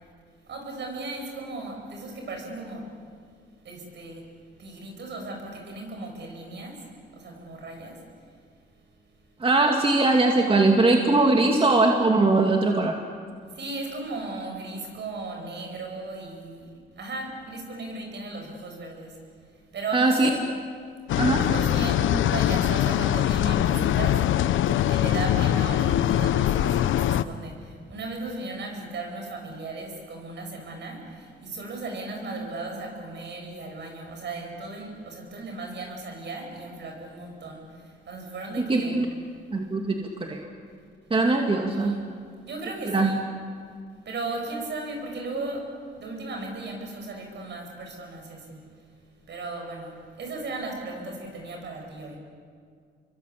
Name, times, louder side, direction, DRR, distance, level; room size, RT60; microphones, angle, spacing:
voice 1, 0.5-2.9 3.6-4.3 4.6-6.8 7.1-8.0 13.5-16.7 17.0-19.2 19.7-20.5 21.4-24.2 24.7-39.1 41.6-42.1 42.4-43.2 44.0-45.7 46.0-48.6 49.3-52.2, right 3 dB, 60° right, 2 dB, 7.8 m, -36 dB
voice 2, 9.4-13.0 19.9-20.3 21.2-21.4 38.6-39.0 39.5-40.4 41.1-41.9 42.9-43.1, right 2 dB, 25° right, 2 dB, 2.5 m, -21 dB
sound 1, 21.1-27.2, left 11 dB, 75° left, 0.8 m, -23 dB
29.0 x 23.0 x 8.6 m, 2.2 s
cardioid pair, 90°, 20 cm